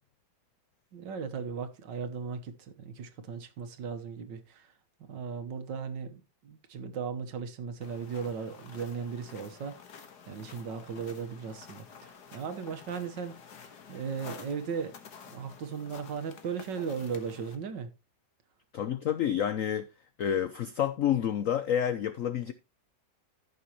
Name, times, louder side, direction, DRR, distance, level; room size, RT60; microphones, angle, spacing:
voice 1, 0.9-4.7 5.0-10.0 10.3-13.4 13.9-15.0 15.3-17.9, right 6 dB, 65° right, 1.7 m, -37 dB
sound 1, 7.8-17.6, left 6 dB, 55° left, 1.8 m, -50 dB
voice 2, 18.7-19.9 20.2-22.5, left 9 dB, 85° left, 0.7 m, -29 dB
15.0 x 6.2 x 2.9 m
omnidirectional pair, 2.2 m